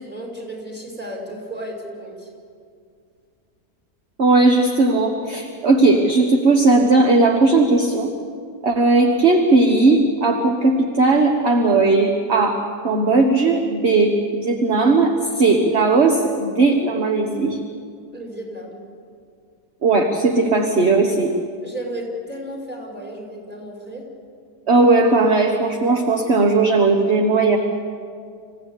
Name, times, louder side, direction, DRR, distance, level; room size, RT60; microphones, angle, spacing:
voice 1, 0.0-2.3 18.1-18.8 21.6-24.1, right 1 dB, 5° right, 0 dB, 5.4 m, -33 dB
voice 2, 4.2-8.1 8.6-17.6 19.8-21.3 24.7-27.6, right 3 dB, 40° right, 3 dB, 1.6 m, -17 dB
27.0 x 15.5 x 8.5 m, 2.2 s
omnidirectional pair, 1.8 m